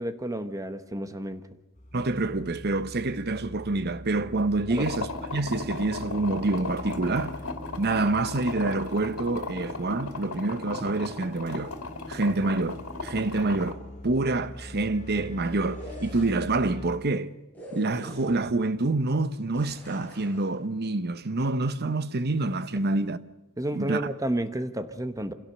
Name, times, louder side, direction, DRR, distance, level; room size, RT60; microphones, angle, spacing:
voice 1, 0.0-1.4 4.7-4.9 23.6-25.3, right 1 dB, 15° right, 1.0 m, -31 dB
sound 1, 1.8-17.0, equal, 35° left, 1.2 m, -44 dB
voice 2, 1.9-7.4 7.8-11.7 12.1-17.3 17.7-23.2 23.7-24.1, right 2 dB, 50° right, 0.9 m, -27 dB
sound 2, 4.7-13.7, left 3 dB, 85° left, 3.0 m, -36 dB
sound 3, 15.7-16.6 17.5-18.6 19.5-20.5, right 1 dB, 5° left, 7.0 m, -44 dB
26.0 x 17.5 x 6.8 m
head